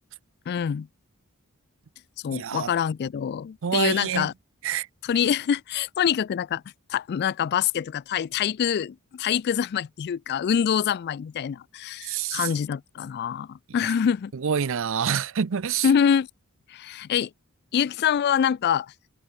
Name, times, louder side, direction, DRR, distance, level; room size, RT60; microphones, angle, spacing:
voice 1, 0.5-0.9 2.2-4.3 5.0-6.6 6.9-14.3 15.8-16.3 16.7-17.3 17.7-18.9, left 8 dB, 50° left, 0.3 m, -25 dB
voice 2, 2.3-2.7 3.6-4.3 4.6-4.9 12.0-12.5 13.8-13.9 14.3-15.9, right 7 dB, 65° right, 0.5 m, -27 dB
head